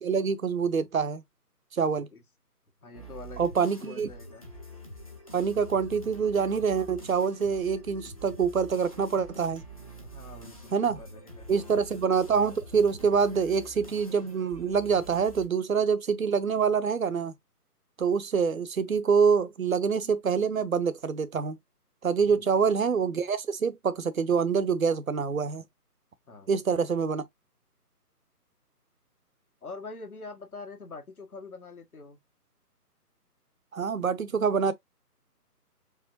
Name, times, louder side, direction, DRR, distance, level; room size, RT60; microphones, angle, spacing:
voice 1, 0.0-1.2 1.7-2.1 3.4-4.1 5.3-9.6 10.7-11.0 11.5-17.3 18.0-21.6 22.0-25.6 26.5-27.2 33.7-34.7, right 6 dB, 60° right, 0.8 m, -26 dB
voice 2, 2.8-4.4 10.0-11.8 22.3-22.5 26.3-26.6 29.6-32.2, left 4 dB, 65° left, 1.6 m, -45 dB
sound 1, 2.9-15.5, equal, 25° left, 0.7 m, -46 dB
4.9 x 3.3 x 2.6 m
figure-of-eight pair, 150°, 48 cm